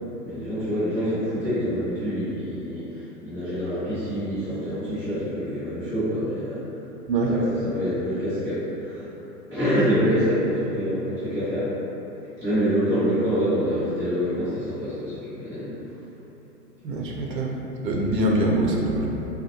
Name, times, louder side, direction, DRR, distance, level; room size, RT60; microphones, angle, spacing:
voice 1, 0.2-6.6 7.3-9.1 9.5-11.7 12.4-15.7, equal, 5° left, -17 dB, 0.4 m, -26 dB
voice 2, 16.8-17.6 17.8-19.1, right 1 dB, 85° right, -1 dB, 0.6 m, -24 dB
3.5 x 2.1 x 2.8 m, 3.0 s
hypercardioid pair, 115°, 48 cm